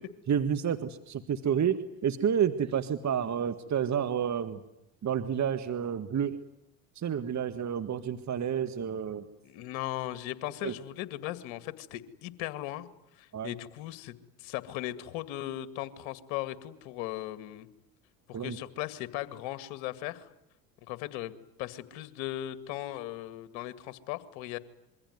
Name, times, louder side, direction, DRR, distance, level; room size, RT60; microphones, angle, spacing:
voice 1, 0.3-4.6 5.0-6.4 7.0-9.3 10.6-10.7 13.3-13.5 18.3-18.6, right 8 dB, 35° right, 10 dB, 1.8 m, -30 dB
voice 2, 9.4-12.9 13.2-17.7 18.3-20.3 20.8-24.6, left 14 dB, 65° left, 13 dB, 2.3 m, -38 dB
26.5 x 23.5 x 9.5 m, 0.81 s
hypercardioid pair, 75°, 50 cm